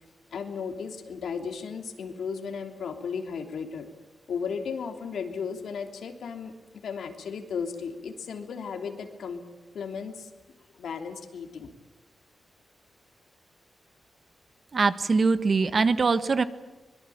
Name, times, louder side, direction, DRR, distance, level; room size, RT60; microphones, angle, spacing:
voice 1, 0.3-3.9 4.3-6.5 6.8-9.4 9.7-10.3 10.8-11.7, left 6 dB, 90° left, 5 dB, 3.2 m, -35 dB
voice 2, 14.7-16.4, right 4 dB, 40° right, 12 dB, 1.3 m, -22 dB
24.0 x 22.0 x 8.8 m, 1.2 s
wide cardioid pair, 150°, 0 cm